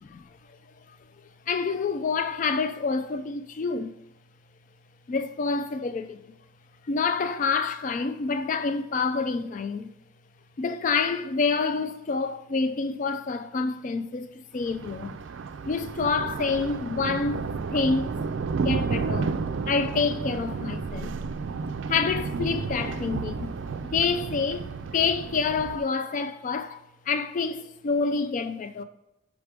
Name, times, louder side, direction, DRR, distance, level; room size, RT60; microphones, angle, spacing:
voice 1, 1.5-3.9 5.1-6.3 6.8-9.9 10.6-15.1 15.7-18.2 18.6-19.4 19.6-21.2 21.9-23.6 23.8-26.8 27.1-28.8, left 4 dB, 40° left, 0.3 m, -27 dB
Thunder, 14.6-25.8, right 4 dB, 70° right, 0.4 m, -32 dB
5.0 x 4.7 x 5.0 m
head